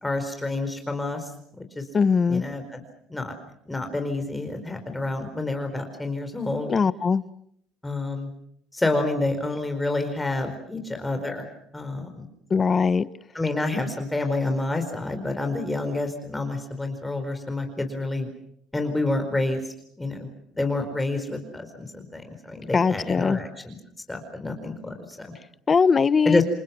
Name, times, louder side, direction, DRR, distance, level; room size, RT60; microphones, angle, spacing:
voice 1, 0.0-1.3 1.6-1.8 2.3-2.8 3.1-3.3 3.7-6.7 7.8-8.3 8.7-11.5 11.7-12.3 13.3-18.3 18.7-20.3 20.6-23.8 24.1-25.3 26.2-26.4, left 2 dB, 10° left, 6 dB, 4.6 m, -28 dB
voice 2, 1.9-2.4 6.7-7.2 12.5-13.1 22.7-23.4 25.7-26.4, left 5 dB, 35° left, 16 dB, 1.0 m, -20 dB
29.0 x 24.0 x 6.2 m, 0.70 s
supercardioid pair, 95°, 0 cm